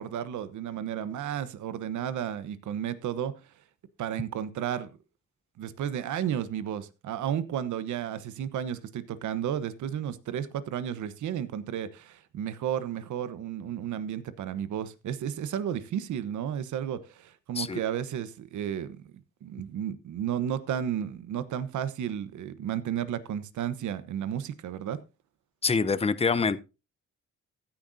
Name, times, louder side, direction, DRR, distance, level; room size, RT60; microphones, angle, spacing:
voice 1, 0.0-3.3 4.0-4.9 5.6-25.0, right 9 dB, 75° right, 1.2 m, -33 dB
voice 2, 25.6-26.6, left 5 dB, 20° left, 0.8 m, -25 dB
15.0 x 10.5 x 2.7 m
cardioid pair, 90°, 30 cm